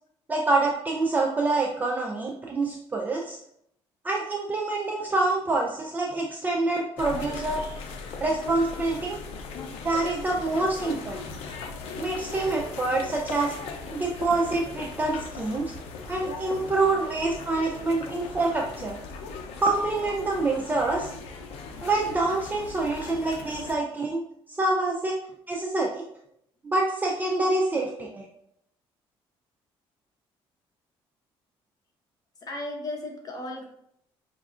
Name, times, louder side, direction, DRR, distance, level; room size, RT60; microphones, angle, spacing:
voice 1, 0.3-3.4 4.0-7.8 8.2-9.2 9.8-11.2 12.0-13.5 13.9-15.7 16.1-19.0 19.6-21.1 21.8-24.2 24.5-25.2 25.5-26.0 26.6-28.3, right 2 dB, 20° right, -1 dB, 0.4 m, -26 dB
sound 1, 7.0-23.8, left 4 dB, 85° left, 0.5 m, -38 dB
voice 2, 32.4-33.6, left 2 dB, 40° left, 0 dB, 0.9 m, -36 dB
5.0 x 2.3 x 2.4 m, 0.73 s
cardioid pair, 120°, 10 cm